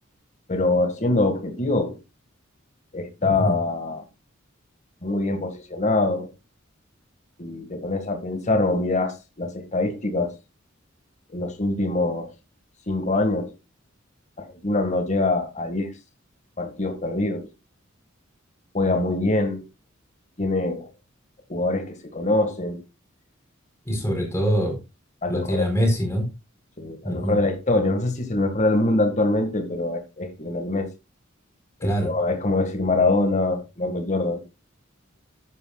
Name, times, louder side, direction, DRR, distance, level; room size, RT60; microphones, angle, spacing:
voice 1, 0.5-2.0 2.9-4.0 5.0-6.3 7.4-10.3 11.3-12.3 12.9-13.5 14.4-15.9 16.6-17.5 18.7-19.7 20.4-20.9 21.5-22.8 25.2-25.7 26.8-30.9 31.8-34.4, left 2 dB, 35° left, 1.9 m, -24 dB
voice 2, 3.2-3.5 23.8-24.8 25.3-26.3 27.0-27.4 31.8-32.1, equal, 15° left, 4.2 m, -24 dB
13.0 x 9.8 x 2.4 m
head